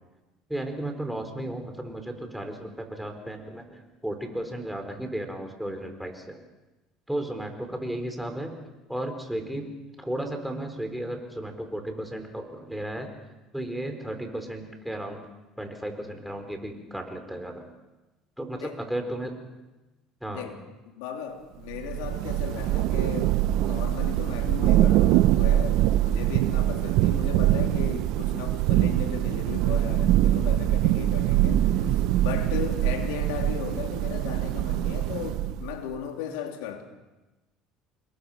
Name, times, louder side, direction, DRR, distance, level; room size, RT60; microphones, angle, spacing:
voice 1, 0.5-6.4 7.1-8.6 8.9-9.7 10.0-13.1 13.5-15.2 15.6-17.7 18.4-19.4 20.2-20.5, right 1 dB, ahead, 4.5 m, -34 dB
voice 2, 20.3-20.6 20.8-36.8, left 9 dB, 85° left, 3.2 m, -36 dB
Thunder / Rain, 21.7-35.8, right 13 dB, 70° right, 0.7 m, -23 dB
27.0 x 22.0 x 5.9 m
supercardioid pair, 100°, 0 cm